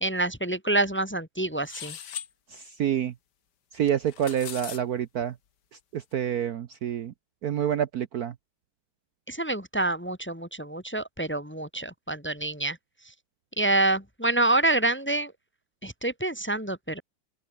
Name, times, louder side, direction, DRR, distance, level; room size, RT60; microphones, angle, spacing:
voice 1, 0.0-2.0 9.3-12.8 13.6-15.3 15.8-17.0, right 2 dB, 5° left, 1.4 m, -27 dB
sound 1, 1.7-2.3 3.9-4.8, left 9 dB, 60° left, 1.8 m, -39 dB
voice 2, 2.5-3.1 3.7-5.3 5.9-7.1 7.4-8.3, right 9 dB, 60° right, 1.2 m, -28 dB
open air
omnidirectional pair, 2.1 m